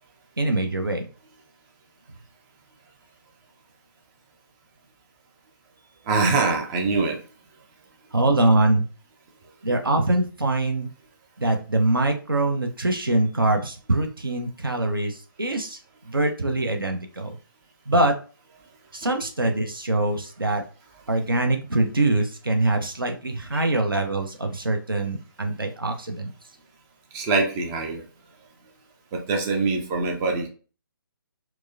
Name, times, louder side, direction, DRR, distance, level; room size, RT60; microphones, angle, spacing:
voice 1, 0.4-1.1 8.1-8.8 9.6-10.9 11.4-15.8 16.1-17.4 17.9-18.1 18.9-20.6 21.1-26.3, right 2 dB, 75° right, 4 dB, 0.8 m, -23 dB
voice 2, 6.1-7.2 23.5-23.7 27.1-28.0 29.1-30.5, right 3 dB, 10° right, 3 dB, 0.4 m, -24 dB
4.6 x 2.1 x 2.6 m, 0.37 s
figure-of-eight pair, 140°, 12 cm